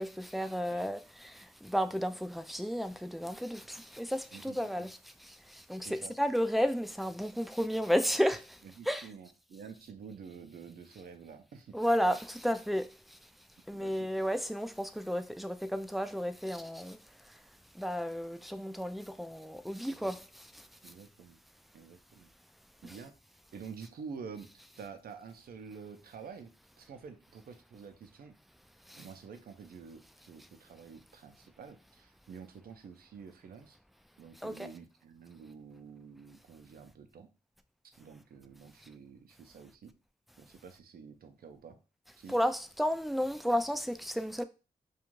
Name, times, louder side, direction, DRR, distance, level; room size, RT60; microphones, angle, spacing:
voice 1, 0.0-8.6 8.9-9.1 11.7-12.9 13.7-17.0 17.8-20.2 22.8-22.9 28.9-29.0 34.4-34.5 42.3-44.4, equal, ahead, 0.3 m, -32 dB
voice 2, 4.3-4.9 5.8-6.2 8.6-11.8 13.7-14.3 19.9-20.2 20.8-21.4 21.7-22.3 22.8-23.1 23.5-28.4 29.0-33.8 34.2-37.3 38.0-39.9 40.4-41.8 42.2-42.4, right 6 dB, 75° right, 0.5 m, -49 dB
2.4 x 2.3 x 3.0 m
cardioid pair, 45°, 16 cm